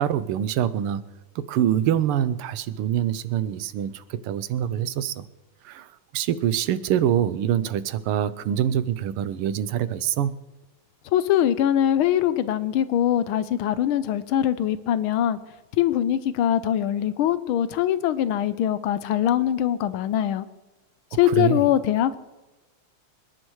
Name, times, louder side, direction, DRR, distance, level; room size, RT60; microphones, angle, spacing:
voice 1, 0.0-5.2 5.6-5.9 6.1-10.3 21.4-21.6, right 10 dB, 85° right, 1.6 m, -25 dB
voice 2, 11.1-15.4 15.7-20.4 21.1-22.2, left 11 dB, 80° left, 1.5 m, -22 dB
26.0 x 10.5 x 3.1 m
omnidirectional pair, 2.4 m